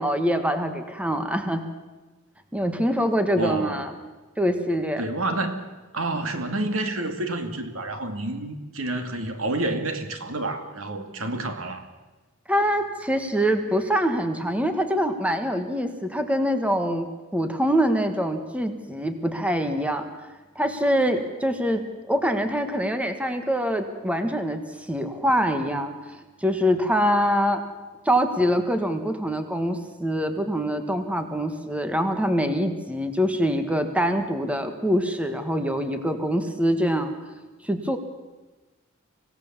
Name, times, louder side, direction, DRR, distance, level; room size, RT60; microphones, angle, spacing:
voice 1, 0.0-1.6 2.5-3.9 4.4-5.0 12.5-17.1 17.3-20.1 20.5-24.6 24.9-25.9 26.4-27.6 28.0-37.1 37.6-38.0, equal, 5° right, 7 dB, 1.4 m, -24 dB
voice 2, 3.4-3.9 5.0-5.7 5.9-11.8, right 2 dB, 75° right, 7 dB, 2.2 m, -29 dB
25.5 x 17.0 x 7.3 m, 1.2 s
head